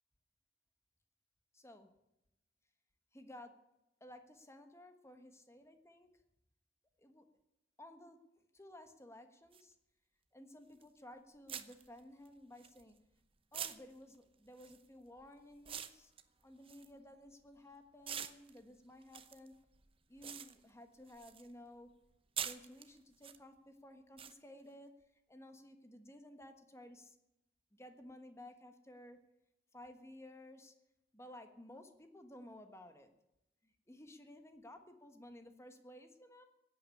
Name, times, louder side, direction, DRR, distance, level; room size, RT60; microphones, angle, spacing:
voice 1, 1.5-1.9 3.1-3.5 4.0-6.1 7.0-7.3 7.8-8.2 8.5-9.8 10.3-13.0 13.5-16.1 16.4-19.5 20.1-21.9 22.4-24.9 25.3-27.2 27.7-29.2 29.7-30.7 31.1-33.1 33.6-36.4, left 1 dB, 15° left, 7 dB, 1.4 m, -55 dB
sound 1, 9.5-9.6 10.8-11.0 11.5-13.1 13.5-17.6 18.0-21.5 21.8-23.4 24.2-24.3, right 8 dB, 30° right, 0.8 m, -46 dB
16.0 x 8.6 x 9.7 m, 0.90 s
head